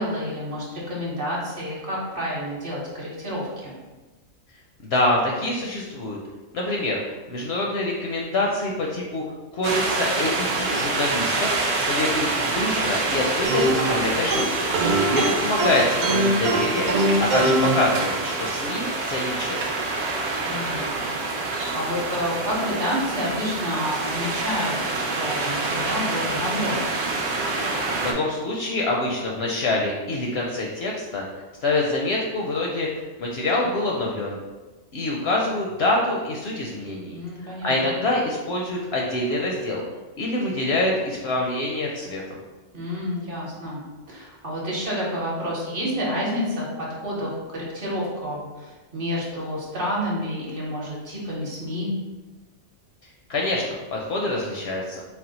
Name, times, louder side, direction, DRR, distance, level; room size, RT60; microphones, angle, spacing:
voice 1, 0.0-3.8 14.9-15.2 20.4-21.2 21.7-26.8 37.1-38.0 42.7-43.8 44.1-51.9, equal, 45° right, -5 dB, 1.0 m, -29 dB
voice 2, 4.8-6.2 6.5-9.2 9.5-19.8 28.0-31.2 31.6-32.9 33.2-34.4 34.9-37.2 37.4-39.8 40.2-42.2 53.3-55.0, left 2 dB, 65° left, -2 dB, 0.7 m, -26 dB
sound 1, 9.6-28.1, right 3 dB, 60° right, 0.9 m, -26 dB
sound 2, 13.4-18.5, right 1 dB, 85° right, 1.1 m, -24 dB
4.3 x 2.1 x 3.9 m, 1.2 s
omnidirectional pair, 1.4 m